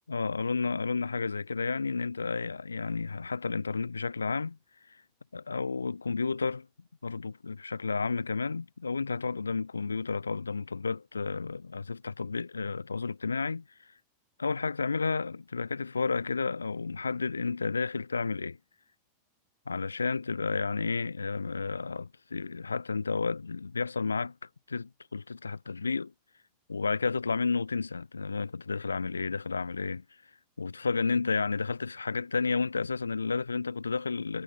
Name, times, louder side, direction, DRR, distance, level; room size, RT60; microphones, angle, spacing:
voice 1, 0.1-4.6 5.3-6.7 7.0-13.6 14.4-18.6 19.7-24.3 24.7-26.1 26.7-30.0 30.6-34.4, left 4 dB, 75° left, 4.0 m, -31 dB
figure-of-eight pair, 90°, 0 cm